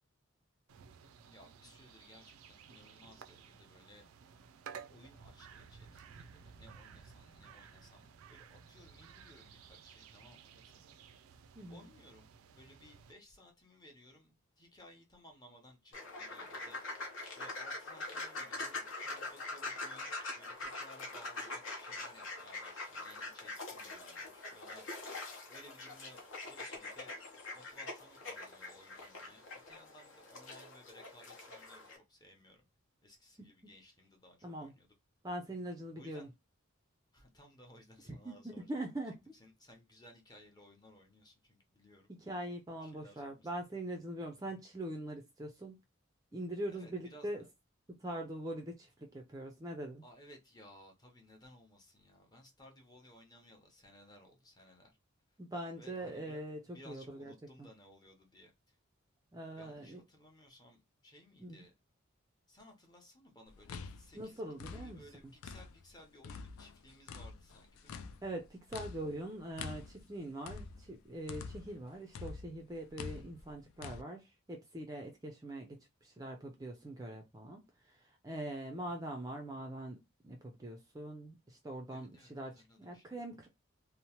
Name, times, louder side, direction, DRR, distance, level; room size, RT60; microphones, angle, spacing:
sound 1, 0.7-13.1, right 6 dB, 85° right, 0.4 m, -55 dB
voice 1, 1.3-4.1 4.9-11.0 11.7-17.0 17.3-24.9 25.5-27.2 27.5-32.6 33.0-34.9 35.9-36.3 37.1-38.8 39.0-42.1 42.8-43.5 46.7-47.3 50.0-55.0 55.8-58.8 59.6-61.7 62.5-64.4 64.7-68.1 81.9-83.2, left 1 dB, 20° left, 0.7 m, -59 dB
voice 2, 11.6-11.9 33.4-33.5 34.4-34.7 35.2-36.3 38.1-39.2 42.1-45.8 46.3-47.4 48.0-50.0 55.4-57.3 59.3-60.0 61.4-61.6 64.1-65.0 68.2-83.5, right 1 dB, 15° right, 0.4 m, -43 dB
sound 2, 15.9-32.0, left 2 dB, 65° left, 0.9 m, -44 dB
sound 3, 63.5-65.9 66.2-71.8 72.1-74.0, left 5 dB, 85° left, 0.3 m, -47 dB
2.8 x 2.0 x 2.8 m
head